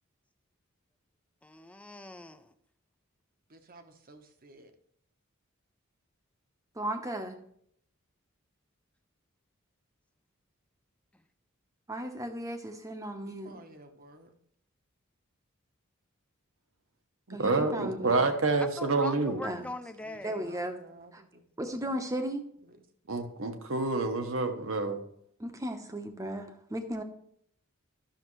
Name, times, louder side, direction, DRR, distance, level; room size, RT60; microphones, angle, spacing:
voice 1, 1.4-2.5 18.6-20.4, left 2 dB, 5° left, 8 dB, 0.5 m, -41 dB
voice 2, 3.5-4.7 13.2-14.3 20.0-22.2 22.6-22.8, right 2 dB, 45° right, 7 dB, 1.0 m, -54 dB
voice 3, 6.8-7.4 11.9-13.6 17.3-18.3 19.4-19.7 20.2-20.8 21.1-21.2 21.6-22.4 25.4-27.0, right 1 dB, 15° right, 6 dB, 0.9 m, -35 dB
voice 4, 17.3-19.4 23.1-25.0, right 3 dB, 65° right, 6 dB, 1.1 m, -28 dB
12.0 x 6.4 x 3.1 m, 0.69 s
head